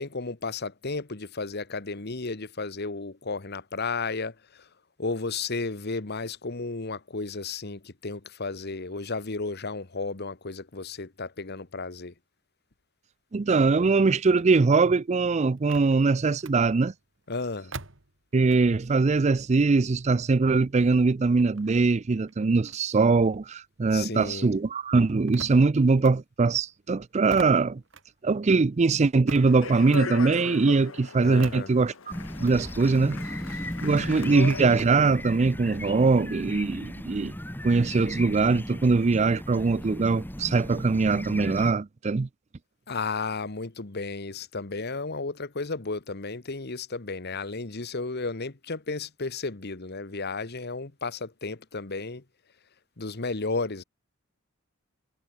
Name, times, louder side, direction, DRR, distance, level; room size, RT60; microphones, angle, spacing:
voice 1, 0.0-4.6 5.0-12.1 17.3-17.7 23.9-24.5 31.2-31.7 34.1-34.3 42.9-52.2 53.0-53.8, left 3 dB, 55° left, 1.4 m, -33 dB
voice 2, 13.3-16.9 18.3-27.8 28.2-31.9 32.4-33.2 33.8-37.3 37.6-42.3, right 4 dB, 35° right, 0.4 m, -22 dB
sound 1, 13.8-18.9 19.2-24.1 24.4-32.6, right 3 dB, 65° right, 3.3 m, -48 dB
Speech, 29.3-35.1, left 4 dB, 85° left, 1.3 m, -38 dB
sound 2, 32.1-41.7, equal, 10° left, 3.5 m, -36 dB
head